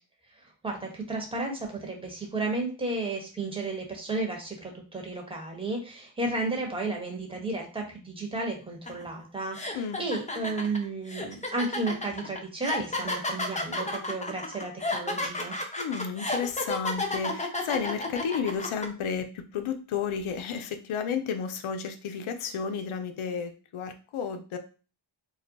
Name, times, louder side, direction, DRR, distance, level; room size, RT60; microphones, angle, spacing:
voice 1, 0.4-15.6, right 2 dB, 10° right, 0 dB, 1.0 m, -33 dB
sound 1, 8.9-9.0 9.5-18.9, left 2 dB, 15° left, 0.6 m, -32 dB
voice 2, 15.8-24.6, left 6 dB, 75° left, 7 dB, 0.6 m, -32 dB
2.4 x 2.2 x 3.9 m, 0.35 s
cardioid pair, 65°, 49 cm